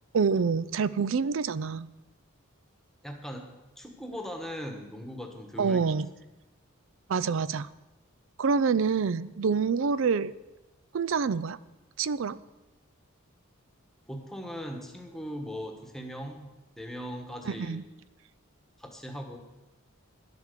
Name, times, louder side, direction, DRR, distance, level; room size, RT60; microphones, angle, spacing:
voice 1, 0.1-1.9 5.6-6.1 7.1-7.7 8.4-10.3 10.9-11.6 12.0-12.4 17.4-17.8, right 5 dB, 65° right, 18 dB, 0.4 m, -26 dB
voice 2, 3.0-3.5 3.8-5.8 14.1-17.8 18.8-19.4, equal, ahead, 3 dB, 1.3 m, -39 dB
11.0 x 8.3 x 6.7 m, 1.1 s
head